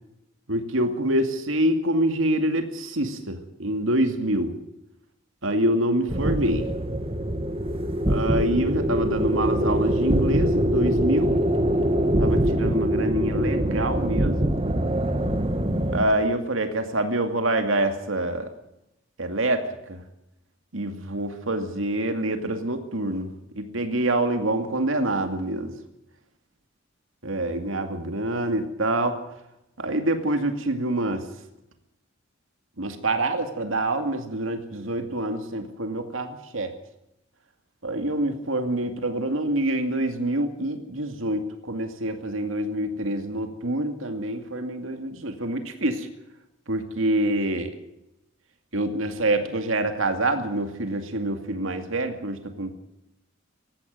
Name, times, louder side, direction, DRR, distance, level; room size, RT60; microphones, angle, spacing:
voice 1, 0.5-4.5 5.4-6.7 8.1-11.4 12.2-14.5 15.9-18.5 19.2-20.0 20.7-23.3 23.5-25.7 27.2-29.2 29.8-31.2 32.8-36.8 37.8-46.1 46.7-47.7 48.7-52.8, right 1 dB, 90° right, 7 dB, 2.4 m, -26 dB
sound 1, 6.1-16.1, right 1 dB, 30° right, 1.8 m, -23 dB
18.5 x 15.0 x 9.5 m, 0.86 s
head